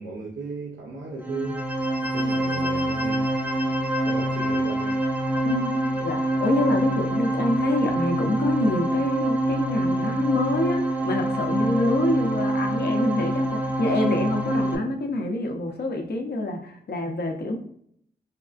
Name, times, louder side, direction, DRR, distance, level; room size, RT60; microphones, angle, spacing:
voice 1, 0.0-1.6 2.0-3.3 4.0-5.0, right 3 dB, 90° right, 0.5 m, -35 dB
sound 1, 1.2-14.8, right 1 dB, 10° right, 0.5 m, -25 dB
voice 2, 5.4-17.6, left 2 dB, 60° left, 0.7 m, -26 dB
3.4 x 2.3 x 2.4 m
cardioid pair, 45°, 19 cm